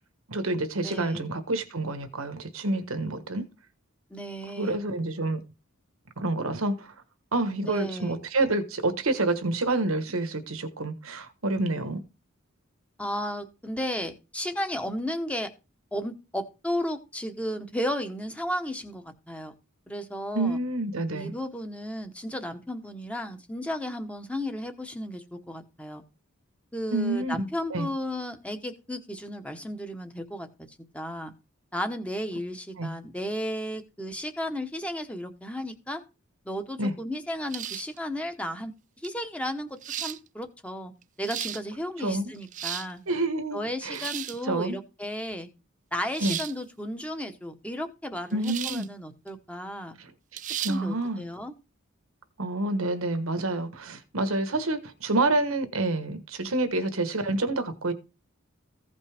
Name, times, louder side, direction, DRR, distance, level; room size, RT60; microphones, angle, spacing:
voice 1, 0.3-3.5 4.6-5.4 6.2-6.9 7.3-12.0 20.3-21.3 26.9-27.9 32.8-32.9 36.8-36.9 42.0-42.3 43.1-44.0 44.5-44.8 46.2-46.4 48.3-48.9 50.6-51.3 52.4-57.9, right 2 dB, 85° right, 1.3 m, -28 dB
voice 2, 0.8-1.2 4.1-4.8 7.6-8.2 13.0-15.5 15.9-19.5 19.9-20.6 21.1-26.0 26.7-30.5 30.9-31.3 31.7-36.0 36.4-38.7 39.0-40.9 41.2-43.0 43.5-45.5 45.9-50.0 50.5-51.5, equal, 5° left, 1.0 m, -34 dB
sound 1, 37.5-38.0 39.0-39.1 39.8-40.2 41.0-41.6 42.3-42.9 43.9-44.4 46.1-46.5 48.4-48.9 49.3-49.4 50.4-50.8, right 11 dB, 35° right, 0.4 m, -34 dB
15.5 x 5.3 x 3.5 m
head